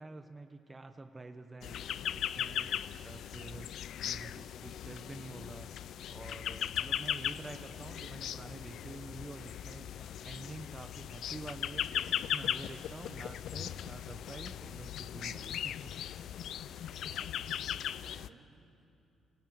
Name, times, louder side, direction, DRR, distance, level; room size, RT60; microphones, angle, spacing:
voice 1, 0.0-2.7 3.0-3.7 4.0-16.3, right 2 dB, 20° right, 6 dB, 1.2 m, -48 dB
sound 1, 1.6-18.3, left 10 dB, 75° left, 0.5 m, -38 dB
voice 2, 16.5-18.9, right 4 dB, 55° right, 2 dB, 2.3 m, -59 dB
24.5 x 17.5 x 9.6 m, 2.7 s
cardioid pair, 90°, 0 cm